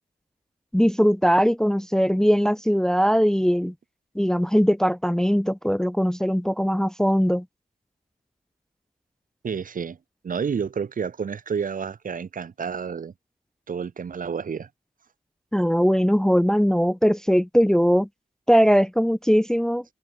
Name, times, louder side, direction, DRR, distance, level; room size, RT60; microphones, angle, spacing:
voice 1, 0.7-3.7 4.2-7.4 15.5-18.1 18.5-19.8, equal, 5° left, 0.6 m, -20 dB
voice 2, 9.4-10.0 10.2-13.1 13.7-14.7, right 6 dB, 60° right, 1.0 m, -30 dB
wide cardioid pair, 140°, 16 cm